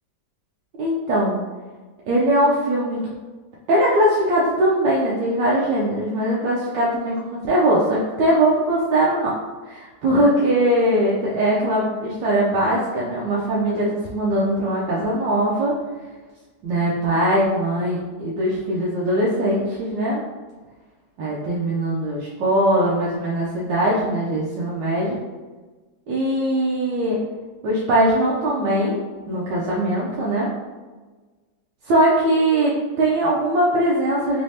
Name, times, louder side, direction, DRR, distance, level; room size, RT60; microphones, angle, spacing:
voice 1, 0.8-1.4 2.1-3.1 3.7-9.3 9.6-15.7 16.6-20.2 21.2-25.2 26.1-27.2 27.6-29.0 29.3-30.5 31.8-32.7 33.0-34.4, right 1 dB, 85° right, -5 dB, 1.3 m, -21 dB
3.4 x 3.2 x 2.7 m, 1.3 s
omnidirectional pair, 1.9 m